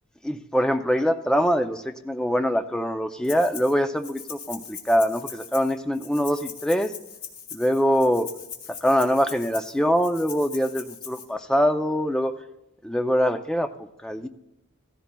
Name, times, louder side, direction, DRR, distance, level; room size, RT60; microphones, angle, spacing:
voice 1, 0.2-6.9 7.5-8.3 8.8-12.4 12.8-14.3, equal, 5° left, 6 dB, 0.4 m, -23 dB
Rattle (instrument), 3.2-3.7 4.0-11.2, left 7 dB, 75° left, 1.6 m, -40 dB
15.5 x 14.5 x 2.2 m, 0.91 s
head